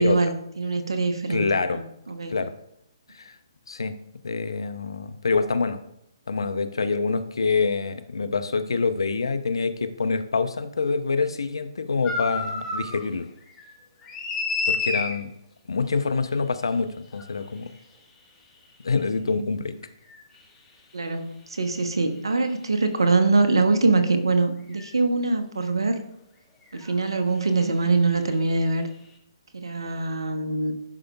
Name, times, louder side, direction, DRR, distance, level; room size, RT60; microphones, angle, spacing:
voice 1, 0.0-1.5 1.7-2.3 20.9-26.0 26.7-28.9 29.5-30.7, right 3 dB, 75° right, 8 dB, 0.9 m, -23 dB
voice 2, 1.3-1.8 2.3-2.5 3.1-3.4 3.7-4.0 4.2-5.8 6.3-13.3 14.7-15.3 15.7-17.7 18.8-19.8, left 4 dB, 75° left, 12 dB, 0.6 m, -26 dB
sound 1, 12.0-13.0 13.4-15.1 17.1-17.2 20.1-20.2 22.9-23.0 24.7-24.9 26.7-26.9 27.2-27.4, left 4 dB, 15° left, 1.4 m, -29 dB
11.0 x 5.0 x 2.3 m, 0.77 s
figure-of-eight pair, 135°, 3 cm